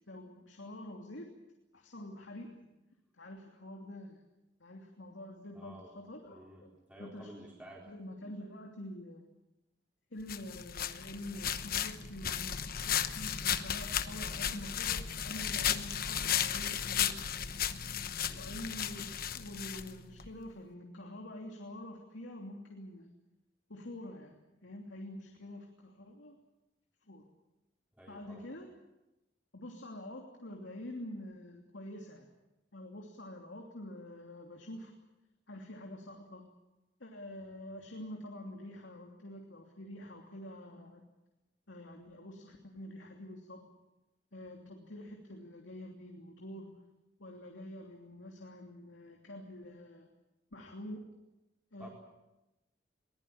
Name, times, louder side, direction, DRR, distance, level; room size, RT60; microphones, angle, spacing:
voice 1, 0.1-1.3 1.7-2.7 3.1-4.2 4.6-6.7 7.0-7.3 7.9-9.3 10.1-17.2 18.3-19.0 19.3-23.1 23.7-26.4 27.1-27.3 28.1-28.7 29.5-32.3 32.7-34.9 35.5-36.5 37.0-41.0 41.7-43.6 44.3-46.8 47.2-50.1 50.5-51.0 51.7-51.9, left 1 dB, 90° left, 1 dB, 3.0 m, -46 dB
voice 2, 5.5-5.9 6.3-7.9 18.3-18.5 28.0-28.4 51.8-51.9, equal, 10° right, -3 dB, 4.2 m, -52 dB
sound 1, 10.3-20.3, left 9 dB, 55° left, 1.1 m, -35 dB
22.5 x 19.5 x 8.8 m, 0.95 s
head